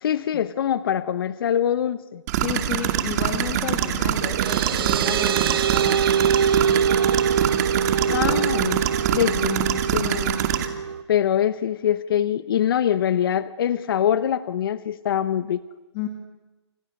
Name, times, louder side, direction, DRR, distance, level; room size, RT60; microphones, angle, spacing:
voice 1, 0.0-2.2 8.1-8.8 9.1-9.6 9.9-10.4 11.1-15.6, left 9 dB, 50° left, 14 dB, 1.0 m, -23 dB
sound 1, 2.3-10.7, right 10 dB, 35° right, 2.4 m, -24 dB
voice 2, 2.4-6.4 8.0-8.4 9.3-9.8 15.9-16.1, left 10 dB, 25° left, 5 dB, 2.3 m, -33 dB
sound 2, 3.9-11.0, right 7 dB, 50° right, 1.0 m, -24 dB
29.0 x 28.5 x 6.6 m, 1.2 s
hypercardioid pair, 150°, 15 cm